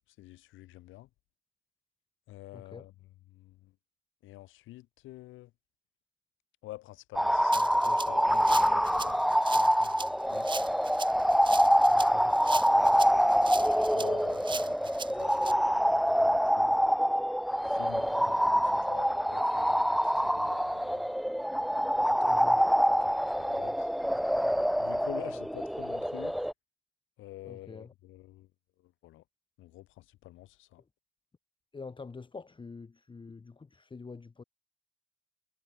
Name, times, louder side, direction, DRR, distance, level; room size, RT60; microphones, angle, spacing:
voice 1, 0.2-1.1 2.3-2.9 3.3-3.7 4.2-5.5 6.6-10.5 11.5-12.0 12.3-12.4 13.3-16.8 17.6-21.1 22.1-22.2 22.5-22.6 23.0-23.9 24.8-26.4 27.2-28.5 29.0-29.2 29.6-30.8, left 17 dB, 80° left, 0.6 m, -48 dB
voice 2, 2.5-2.9 11.9-12.3 18.0-18.3 22.2-22.6 27.4-27.9 31.7-34.4, left 4 dB, 25° left, 1.1 m, -46 dB
sound 1, 7.1-26.5, equal, ahead, 0.4 m, -26 dB
Rattle (instrument), 7.5-15.5, right 4 dB, 25° right, 0.7 m, -40 dB
cardioid pair, 90°, 20 cm